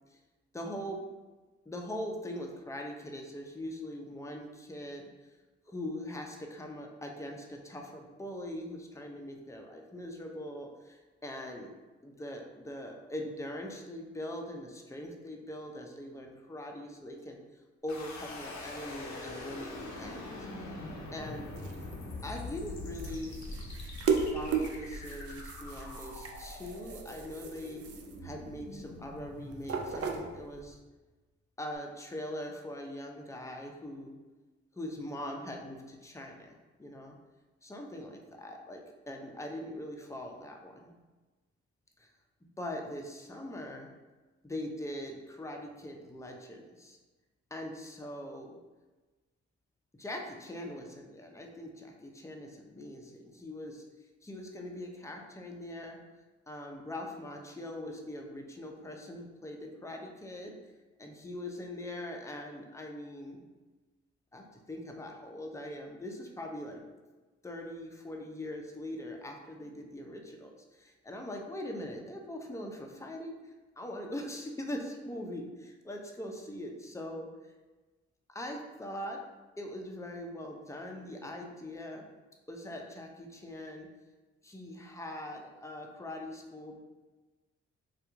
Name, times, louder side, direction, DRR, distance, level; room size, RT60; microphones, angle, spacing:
voice 1, 0.5-1.1 1.7-5.3 5.7-11.7 12.0-17.4 17.8-20.5 21.1-21.5 22.2-23.4 24.1-27.9 28.2-30.8 31.6-34.2 34.7-37.2 37.6-40.9 42.0-42.1 42.6-43.9 44.4-47.0 47.5-48.6 50.0-53.8 54.2-56.0 56.5-60.6 61.0-63.4 64.3-66.8 67.4-73.4 73.8-77.3 78.3-79.2 79.6-82.1 82.5-83.9 84.4-86.8, left 1 dB, 10° left, 1 dB, 0.6 m, -42 dB
sound 1, 17.9-30.8, left 2 dB, 70° left, 0.7 m, -44 dB
sound 2, 21.2-30.8, right 5 dB, 50° right, 0.5 m, -37 dB
2.9 x 2.4 x 3.5 m, 1.2 s
supercardioid pair, 45°, 30 cm